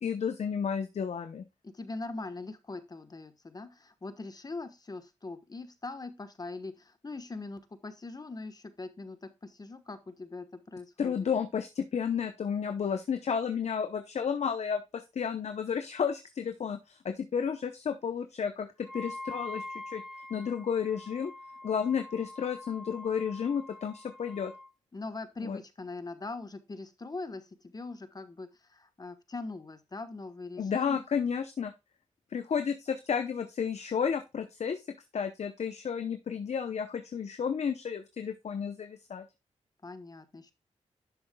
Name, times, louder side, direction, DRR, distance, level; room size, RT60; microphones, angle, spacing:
voice 1, 0.0-1.4 11.0-20.0 20.3-21.3 21.6-24.5 25.4-25.6 30.6-31.7 32.3-34.8 35.1-39.2, left 7 dB, 65° left, 7 dB, 0.8 m, -32 dB
voice 2, 1.6-11.1 24.9-31.0 39.8-40.5, left 3 dB, 30° left, 10 dB, 1.2 m, -42 dB
Wind instrument woodwind instrument, 18.8-24.7, left 2 dB, ahead, 1.0 m, -44 dB
10.5 x 6.9 x 2.3 m, 0.25 s
cardioid pair, 60°, 12 cm